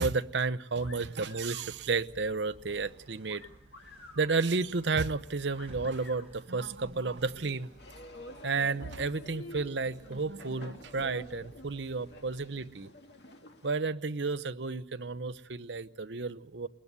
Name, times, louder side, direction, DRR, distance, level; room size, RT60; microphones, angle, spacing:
voice 1, 0.0-3.5 4.2-7.7 8.4-12.9 13.6-16.7, right 4 dB, 65° right, 12 dB, 0.8 m, -32 dB
sound 1, 0.8-1.7 3.3-4.3 5.6-6.3, left 3 dB, 85° left, 6.0 m, -51 dB
sound 2, 0.8-12.5, right 1 dB, 30° right, 7.3 m, -56 dB
sound 3, 7.2-13.8, left 1 dB, 60° left, 2.2 m, -49 dB
21.5 x 21.0 x 8.2 m, 0.80 s
head